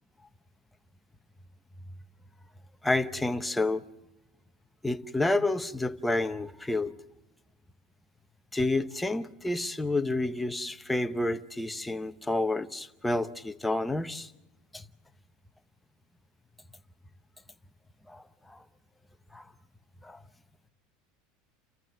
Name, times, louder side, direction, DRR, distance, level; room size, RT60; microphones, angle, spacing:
voice 1, 2.8-3.8 4.8-6.9 8.5-14.3 14.7-14.9 18.1-18.6 19.3-19.4 20.0-20.2, left 2 dB, 5° left, 0.9 m, -29 dB
29.5 x 14.5 x 7.6 m
supercardioid pair, 135°, 0 cm